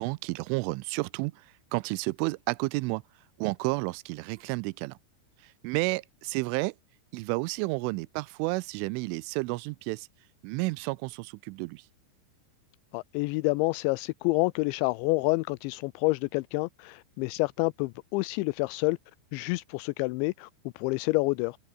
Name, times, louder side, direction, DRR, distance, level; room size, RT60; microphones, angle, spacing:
voice 1, 0.0-1.3 1.7-3.0 3.4-5.0 5.6-6.7 7.1-10.1 10.4-11.8, right 24 dB, 90° right, 3.1 m, -31 dB
voice 2, 12.9-19.0 19.3-20.5 20.8-21.6, left 24 dB, 85° left, 2.7 m, -28 dB
omnidirectional pair, 5.5 m